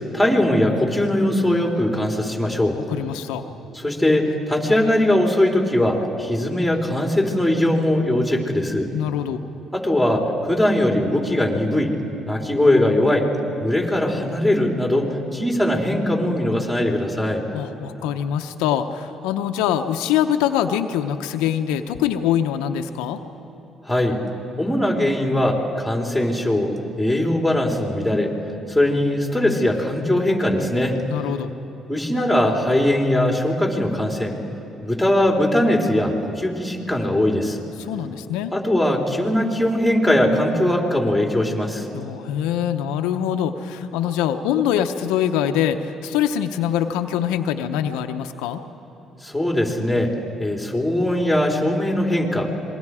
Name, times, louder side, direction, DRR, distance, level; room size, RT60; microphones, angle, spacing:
voice 1, 0.1-2.8 3.7-8.9 9.7-11.9 12.3-13.3 13.6-17.4 23.9-24.2 24.6-26.7 27.0-28.3 28.7-31.0 31.9-34.4 34.8-37.6 38.5-41.9 49.2-50.1 50.4-52.5, left 1 dB, ahead, 0 dB, 4.0 m, -20 dB
voice 2, 2.9-3.4 8.9-9.4 17.5-23.2 31.1-31.5 37.8-38.5 41.9-48.6, left 10 dB, 85° left, 7 dB, 0.7 m, -24 dB
26.5 x 21.5 x 4.9 m, 2.9 s
supercardioid pair, 60°, 0 cm